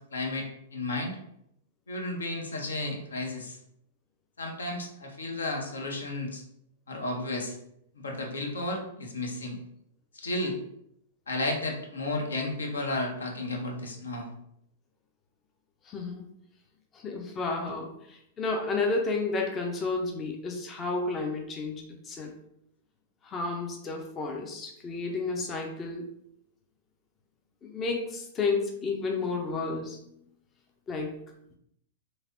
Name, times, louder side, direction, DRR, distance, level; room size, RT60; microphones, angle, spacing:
voice 1, 0.1-1.2 1.9-3.6 4.4-6.4 6.9-7.6 8.0-9.6 10.1-10.6 11.3-14.3, left 2 dB, 70° left, 1 dB, 0.6 m, -33 dB
voice 2, 15.9-16.3 16.9-22.3 23.2-26.1 27.6-30.0 30.9-31.2, left 3 dB, 25° left, 2 dB, 0.5 m, -31 dB
3.2 x 2.6 x 2.5 m, 0.75 s
figure-of-eight pair, 100°, 0 cm